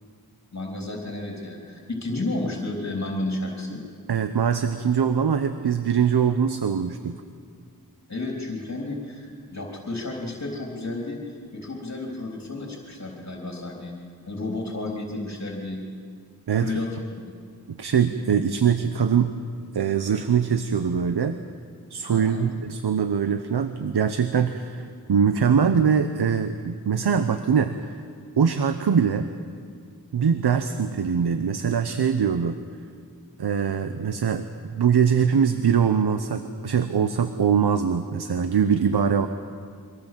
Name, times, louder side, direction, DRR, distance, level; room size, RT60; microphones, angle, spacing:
voice 1, 0.5-3.8 8.1-13.9 14.2-15.8 16.6-16.9 22.1-22.5, left 2 dB, 45° left, 0 dB, 3.4 m, -32 dB
voice 2, 4.1-7.2 16.5-16.8 17.8-19.3 19.7-21.4 21.9-28.0 28.4-29.3 30.1-32.6 33.4-39.3, right 7 dB, 90° right, 9 dB, 0.9 m, -22 dB
24.5 x 17.5 x 7.5 m, 2.1 s
wide cardioid pair, 60°, 38 cm